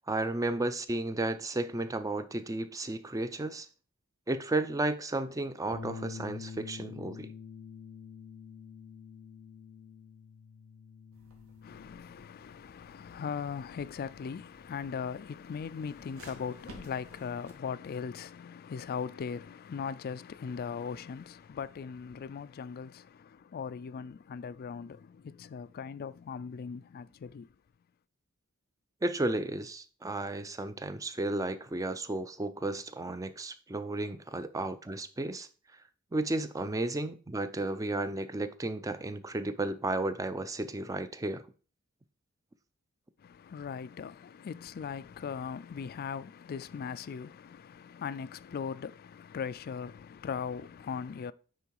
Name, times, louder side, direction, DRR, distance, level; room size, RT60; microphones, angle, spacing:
voice 1, 0.1-3.7 4.3-7.3 29.0-35.5 36.1-41.4, right 2 dB, 15° right, 0.5 m, -33 dB
Bass guitar, 5.7-12.0, left 5 dB, 85° left, 0.6 m, -46 dB
sound 1, 11.1-17.5, right 1 dB, 70° right, 2.1 m, -56 dB
voice 2, 11.6-27.5 43.2-51.3, left 6 dB, 45° left, 0.3 m, -39 dB
9.2 x 3.8 x 4.6 m
head